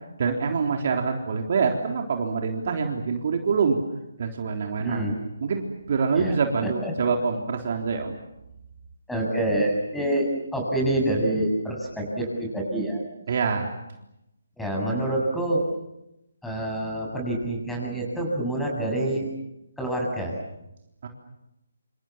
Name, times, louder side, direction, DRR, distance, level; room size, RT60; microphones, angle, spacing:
voice 1, 0.2-3.8 4.2-5.1 5.4-8.2 13.3-13.7 21.0-21.1, right 5 dB, 50° right, 3 dB, 3.6 m, -25 dB
voice 2, 4.8-5.2 6.1-6.4 6.6-6.9 9.1-13.0 14.6-15.7 16.4-19.3 19.8-20.4, right 1 dB, 5° left, -1 dB, 7.9 m, -27 dB
27.5 x 27.0 x 7.4 m, 0.88 s
figure-of-eight pair, 150°, 0 cm